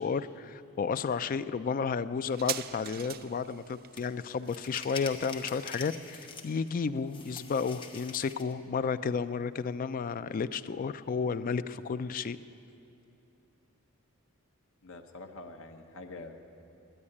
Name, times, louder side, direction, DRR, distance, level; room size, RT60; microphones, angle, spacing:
voice 1, 0.0-12.4, left 5 dB, 40° left, 13 dB, 0.3 m, -32 dB
sound 1, 2.3-9.4 9.7-9.8, right 11 dB, 40° right, 0.3 m, -44 dB
sound 2, 4.0-4.1 4.4-6.7 7.1-8.5, left 4 dB, 20° left, 0.8 m, -44 dB
voice 2, 14.8-16.4, left 3 dB, 60° left, 5 dB, 0.9 m, -45 dB
10.0 x 9.5 x 9.7 m, 2.7 s
head